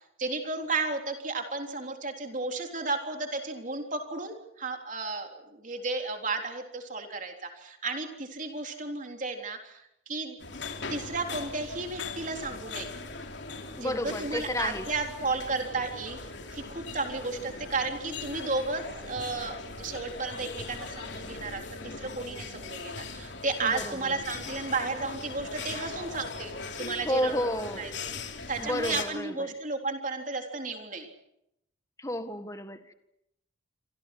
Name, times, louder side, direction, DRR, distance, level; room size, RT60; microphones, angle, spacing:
voice 1, 0.2-10.4 10.9-13.0 13.8-16.2 16.5-27.5 27.8-27.9 28.5-31.1, right 3 dB, 40° right, 3.7 m, -33 dB
sound 1, 10.4-29.0, left 4 dB, 65° left, 3.2 m, -40 dB
voice 2, 13.8-14.9 23.6-24.1 27.0-27.9 28.6-29.5 32.0-32.9, left 1 dB, 15° left, 1.7 m, -32 dB
28.0 x 25.5 x 6.2 m
head